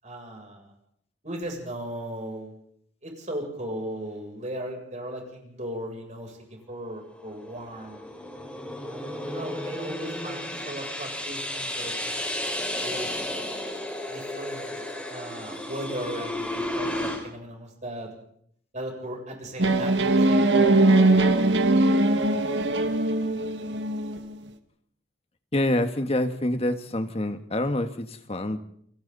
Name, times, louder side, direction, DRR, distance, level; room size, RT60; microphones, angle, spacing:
voice 1, 0.0-0.7 1.2-2.5 3.0-8.1 8.8-12.3 12.8-13.4 14.1-14.8 15.1-18.1 18.7-20.8, right 1 dB, 40° right, 1 dB, 7.9 m, -37 dB
sound 1, 7.1-17.2, left 1 dB, 5° left, 5.3 m, -33 dB
sound 2, 19.6-24.3, right 2 dB, 75° right, 2.0 m, -21 dB
voice 2, 25.5-28.6, left 1 dB, 35° left, 7 dB, 1.7 m, -26 dB
30.0 x 24.0 x 4.2 m, 0.66 s
head